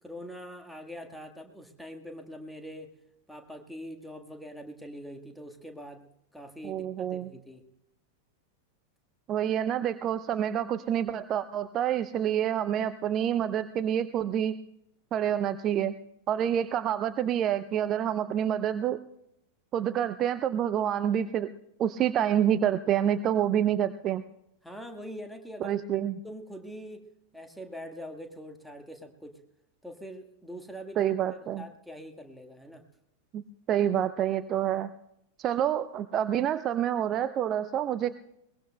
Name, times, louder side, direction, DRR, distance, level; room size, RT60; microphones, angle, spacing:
voice 1, 0.0-2.9 3.3-6.0 6.3-7.6 24.6-25.8 26.2-27.0 27.3-29.4 29.8-32.8, equal, ahead, 4 dB, 1.5 m, -43 dB
voice 2, 6.6-7.3 9.3-14.5 15.1-15.9 16.3-19.0 19.7-21.5 21.8-24.2 25.6-26.2 31.0-31.6 33.3-33.4 33.7-34.9 35.4-38.1, right 10 dB, 30° right, 13 dB, 0.5 m, -27 dB
22.0 x 20.5 x 2.2 m, 0.80 s
figure-of-eight pair, 90°, 0 cm